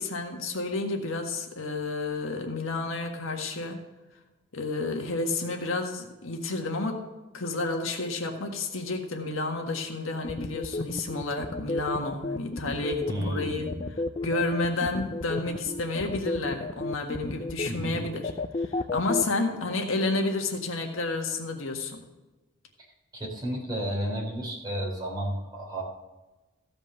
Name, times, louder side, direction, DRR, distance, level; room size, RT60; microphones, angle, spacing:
voice 1, 0.0-3.8 4.5-7.1 7.3-13.8 14.2-18.3 18.6-22.0, left 2 dB, 75° left, 2 dB, 1.7 m, -30 dB
sound 1, 10.2-19.2, left 2 dB, 30° left, 0.4 m, -31 dB
voice 2, 13.1-13.8 17.6-18.1 23.1-25.8, right 1 dB, 20° right, -3 dB, 3.6 m, -32 dB
15.0 x 5.2 x 7.7 m, 1.1 s
head